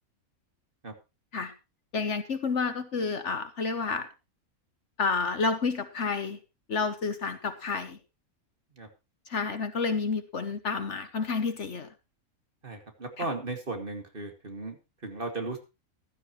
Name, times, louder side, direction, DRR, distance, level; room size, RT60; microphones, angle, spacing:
voice 1, 1.9-4.1 5.0-6.4 6.7-8.0 9.3-11.9 13.2-13.3, left 4 dB, 55° left, 10 dB, 1.4 m, -30 dB
voice 2, 12.6-15.6, right 2 dB, 35° right, 4 dB, 2.5 m, -36 dB
15.0 x 12.5 x 3.1 m, 0.27 s
omnidirectional pair, 1.5 m